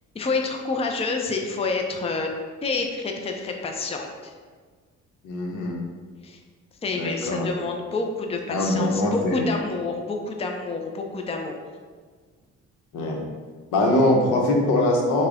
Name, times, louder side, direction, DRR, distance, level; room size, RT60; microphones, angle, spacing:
voice 1, 0.1-2.3 2.6-4.3 6.2-6.4 6.8-11.6, left 3 dB, 20° left, 2 dB, 0.5 m, -28 dB
voice 2, 5.2-5.8 7.0-7.5 8.5-9.5 12.9-13.2 13.7-15.3, left 1 dB, 85° left, 0 dB, 0.9 m, -22 dB
6.0 x 2.3 x 3.5 m, 1.5 s
cardioid pair, 90°, 30 cm